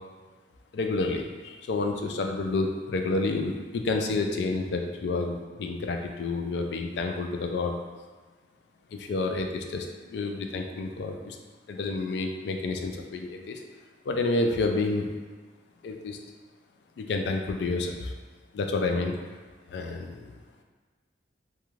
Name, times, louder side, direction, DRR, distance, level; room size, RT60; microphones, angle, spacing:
voice 1, 0.7-7.8 8.9-11.4 11.7-13.6 14.1-15.1 15.8-16.2 17.0-18.1 18.5-19.2 19.7-20.3, left 3 dB, 65° left, 4 dB, 0.3 m, -29 dB
2.4 x 2.2 x 3.1 m, 1.4 s
head